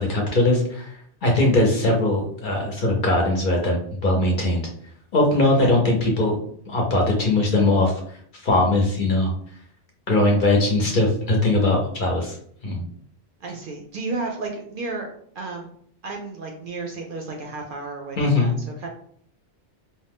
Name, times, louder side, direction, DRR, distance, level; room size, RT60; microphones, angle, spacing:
voice 1, 0.0-4.6 5.1-6.4 6.7-7.9 8.4-9.3 10.1-12.4 12.6-12.8 18.2-18.5, left 2 dB, 55° left, 0 dB, 0.7 m, -20 dB
voice 2, 13.4-15.7 16.0-18.9, right 3 dB, 60° right, 2 dB, 0.6 m, -33 dB
2.6 x 2.1 x 3.4 m, 0.62 s
omnidirectional pair, 1.1 m